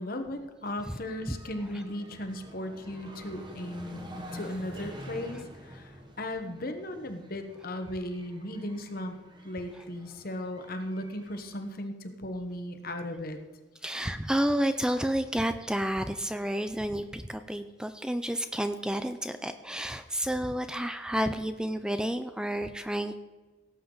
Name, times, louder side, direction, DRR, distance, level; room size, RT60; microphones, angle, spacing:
voice 1, 0.0-4.0 4.3-5.9 6.2-9.2 9.4-13.4, left 1 dB, 55° left, 6 dB, 1.2 m, -36 dB
sound 1, 0.7-11.7, equal, 25° right, 1.4 m, -48 dB
voice 2, 13.8-23.2, right 1 dB, 5° right, 9 dB, 0.4 m, -30 dB
17.5 x 8.0 x 3.9 m, 1.3 s
head